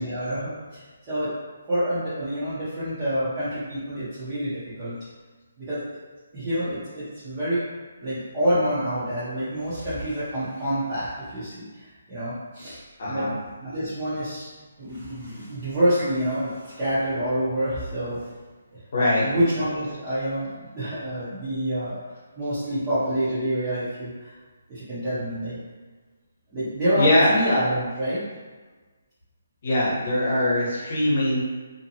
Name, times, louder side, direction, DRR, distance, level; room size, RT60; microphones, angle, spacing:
voice 1, 0.0-1.3 1.7-5.0 5.6-6.0 6.3-7.7 8.0-13.3 13.6-14.5 14.8-18.2 19.2-22.0 22.4-24.3 24.7-25.6 26.5-28.2, equal, 15° right, -14 dB, 0.7 m, -27 dB
voice 2, 13.0-13.3 15.3-15.4 18.9-19.2 26.9-27.4 29.6-31.4, left 1 dB, 45° left, -6 dB, 0.9 m, -22 dB
2.5 x 2.1 x 2.8 m, 1.3 s
hypercardioid pair, 170°, 0 cm